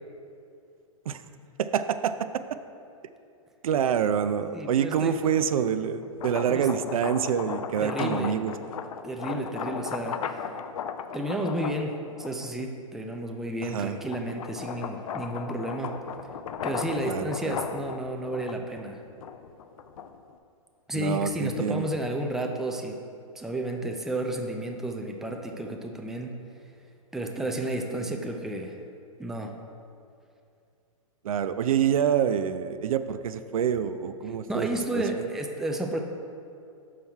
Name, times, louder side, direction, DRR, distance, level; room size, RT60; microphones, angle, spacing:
voice 1, 1.6-2.1 3.6-8.5 13.6-14.0 17.1-17.6 20.9-21.9 31.2-34.7 34.9-35.0, right 8 dB, 80° right, 11 dB, 0.4 m, -26 dB
voice 2, 4.5-5.2 6.5-6.7 7.8-8.4 9.0-10.5 11.1-15.9 16.6-19.0 20.9-23.0 23.4-26.4 27.1-28.8 29.2-29.6 34.5-36.0, right 1 dB, ahead, 2 dB, 0.4 m, -32 dB
sound 1, 6.0-12.6 13.2-20.3, left 7 dB, 75° left, 0.5 m, -36 dB
6.2 x 5.6 x 4.4 m, 2.5 s
hypercardioid pair, 125°, 18 cm